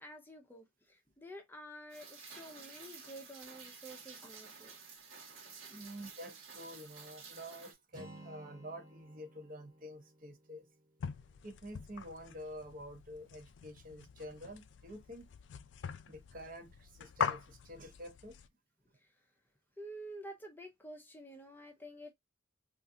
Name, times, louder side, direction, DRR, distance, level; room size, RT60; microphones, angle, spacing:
voice 1, 0.0-4.7 5.1-5.2 5.7-5.8 19.0-19.1 19.8-22.1, right 1 dB, 10° left, 0.5 m, -50 dB
Rain, 1.9-7.7, right 5 dB, 85° right, 1.2 m, -52 dB
voice 2, 5.7-10.6 11.4-15.3 16.1-18.3, equal, 45° right, 0.7 m, -48 dB
Acoustic guitar, 7.9-11.9, right 1 dB, 20° right, 1.0 m, -56 dB
sound 1, 11.0-18.5, left 7 dB, 65° left, 0.3 m, -43 dB
3.7 x 2.5 x 2.6 m
head